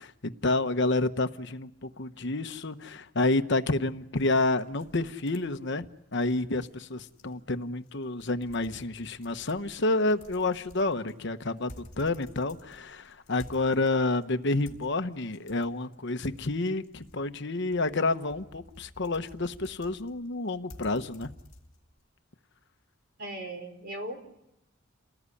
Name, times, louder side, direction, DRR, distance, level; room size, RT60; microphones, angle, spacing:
voice 1, 0.0-5.9 6.1-21.3, left 2 dB, 55° left, 9 dB, 1.0 m, -29 dB
sound 1, 4.1-22.1, left 1 dB, 35° left, 3.6 m, -54 dB
voice 2, 23.2-24.2, right 1 dB, 45° right, 5 dB, 4.6 m, -37 dB
29.5 x 19.5 x 9.9 m, 0.90 s
head